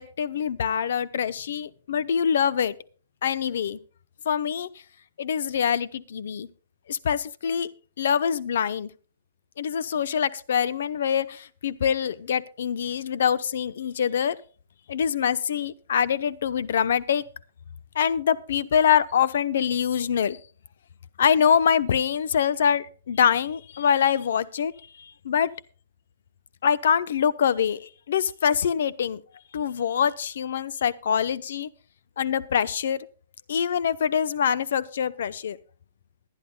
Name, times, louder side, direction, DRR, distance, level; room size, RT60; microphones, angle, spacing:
voice 1, 0.0-2.7 3.2-3.8 4.3-4.7 5.2-6.5 6.9-7.7 8.0-8.9 9.6-14.4 14.9-17.2 17.9-20.4 21.2-24.7 25.0-25.5 26.6-29.2 29.5-31.7 32.2-33.1 33.5-35.6, left 8 dB, 65° left, 16 dB, 0.8 m, -24 dB
21.5 x 10.5 x 2.3 m, 0.37 s
hypercardioid pair, 170°, 0 cm